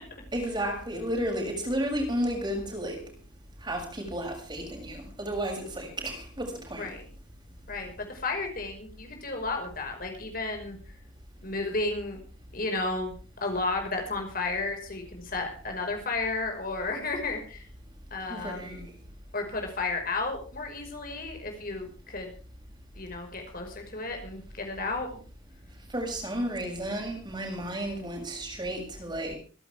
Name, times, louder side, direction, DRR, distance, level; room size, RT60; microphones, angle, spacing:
voice 1, 0.3-3.0 3.6-6.9 18.3-18.9 25.9-29.4, right 1 dB, 25° right, 6.9 m, -32 dB
voice 2, 6.7-7.1 7.7-10.8 11.4-12.2 12.5-13.1 13.4-17.6 18.1-18.8 19.3-22.3 23.0-25.1, left 3 dB, 45° left, 5.5 m, -33 dB
26.0 x 12.0 x 3.6 m
head